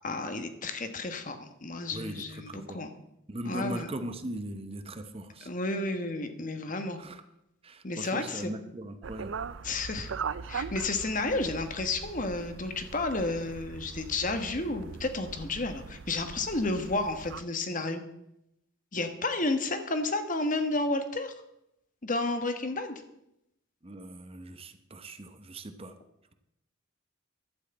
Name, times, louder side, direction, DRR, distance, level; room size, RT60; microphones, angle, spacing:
voice 1, 0.0-2.9 3.4-3.9 5.4-7.0 7.8-8.5 9.6-10.1 10.5-18.0 18.9-21.3 22.0-23.0, left 2 dB, 40° left, 8 dB, 1.2 m, -31 dB
voice 2, 1.9-2.8 3.3-5.5 7.0-7.2 7.6-9.3 23.8-25.9, right 1 dB, 30° right, 9 dB, 0.8 m, -39 dB
sound 1, 9.0-17.4, right 6 dB, 65° right, 0.5 m, -41 dB
11.5 x 6.4 x 8.8 m, 0.82 s
head